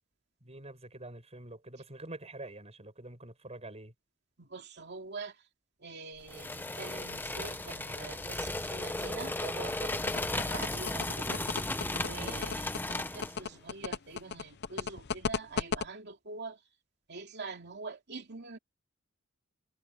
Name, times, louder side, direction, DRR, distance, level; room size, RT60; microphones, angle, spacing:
voice 1, 0.4-3.9 12.1-12.5, right 2 dB, 30° right, 7.5 m, -46 dB
voice 2, 4.4-5.3 5.8-11.4 12.0-16.6 17.1-18.6, right 4 dB, 55° right, 2.7 m, -45 dB
sound 1, 6.3-13.4, left 2 dB, 10° left, 0.9 m, -35 dB
sound 2, 9.9-15.8, left 5 dB, 55° left, 0.7 m, -34 dB
head